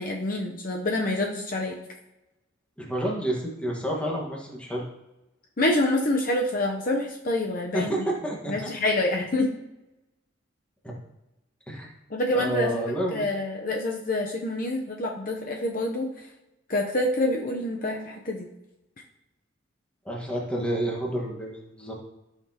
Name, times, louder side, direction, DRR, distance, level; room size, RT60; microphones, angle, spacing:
voice 1, 0.0-1.8 5.6-7.9 8.5-9.5 12.1-12.8 13.1-16.1 16.7-18.5, left 1 dB, 40° left, 1 dB, 0.7 m, -27 dB
voice 2, 2.8-4.8 7.7-8.7 10.8-11.0 11.7-11.9 12.3-13.3 20.0-21.9, right 1 dB, 5° left, -2 dB, 1.5 m, -29 dB
14.0 x 5.9 x 2.9 m, 0.98 s
head